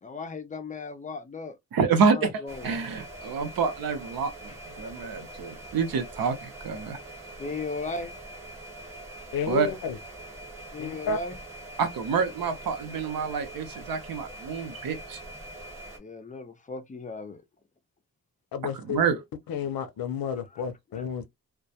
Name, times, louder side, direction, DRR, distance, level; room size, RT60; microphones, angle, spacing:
voice 1, 0.0-2.8 4.5-4.6 7.4-8.1 10.7-11.4 16.0-17.4 20.5-20.6 20.9-21.0, left 3 dB, 25° left, 0.3 m, -37 dB
voice 2, 1.7-2.3 2.6-7.0 9.5-9.7 11.8-15.2 18.9-19.2, right 5 dB, 90° right, 0.8 m, -27 dB
sound 1, 2.5-16.0, right 1 dB, 10° right, 0.9 m, -43 dB
voice 3, 9.3-10.0 10.8-11.2 18.5-19.0 19.5-21.3, left 6 dB, 85° left, 0.6 m, -31 dB
2.2 x 2.2 x 2.7 m
wide cardioid pair, 150°, 34 cm